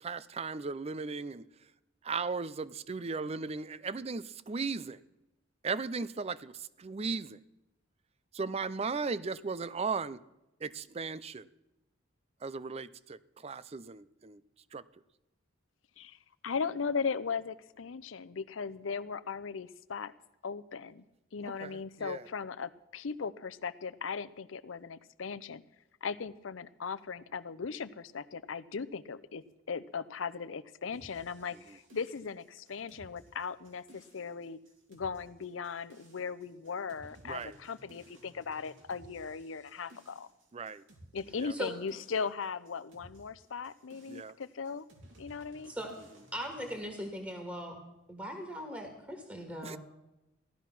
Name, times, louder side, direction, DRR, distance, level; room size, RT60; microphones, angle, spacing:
voice 1, 0.0-1.5 2.0-5.0 5.6-7.4 8.3-10.2 10.6-11.5 12.4-14.4 14.7-14.8 21.4-22.2 37.2-37.6 40.5-40.8 41.4-41.5 44.1-44.4 49.6-49.8, right 4 dB, 30° right, 0.5 m, -37 dB
voice 2, 16.4-20.1 20.4-21.0 21.3-25.6 26.0-34.6 34.9-40.3 41.1-44.9 45.2-45.7, left 5 dB, 85° left, 0.6 m, -38 dB
sound 1, 30.9-46.8, right 1 dB, 80° right, 3.3 m, -58 dB
voice 3, 46.3-47.8 48.1-49.8, equal, 10° right, 1.7 m, -39 dB
15.5 x 12.0 x 5.9 m
head